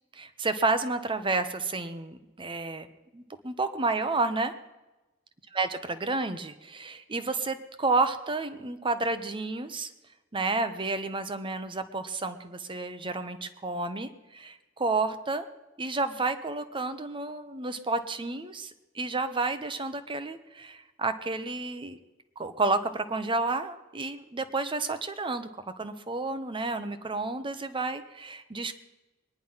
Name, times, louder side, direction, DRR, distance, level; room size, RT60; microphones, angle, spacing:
voice 1, 0.2-2.9 3.1-4.5 5.5-9.9 10.3-15.5 15.8-22.0 22.4-25.5 25.8-28.7, right 3 dB, 25° right, 10 dB, 0.9 m, -31 dB
22.0 x 10.0 x 5.6 m, 1.1 s
head